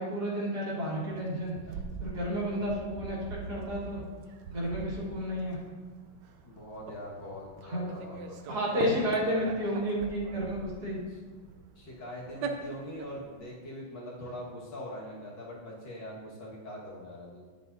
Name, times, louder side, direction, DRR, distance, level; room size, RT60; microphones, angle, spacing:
voice 1, 0.0-1.5 2.0-4.0 4.5-5.6 7.6-7.9 8.5-11.0, equal, 50° right, -5 dB, 2.3 m, -31 dB
sound 1, 0.8-13.5, right 4 dB, 70° right, 1.2 m, -43 dB
voice 2, 6.4-8.4 9.1-9.4 11.8-17.4, left 1 dB, 60° left, -5 dB, 2.3 m, -42 dB
10.0 x 7.4 x 2.6 m, 1.4 s
omnidirectional pair, 2.2 m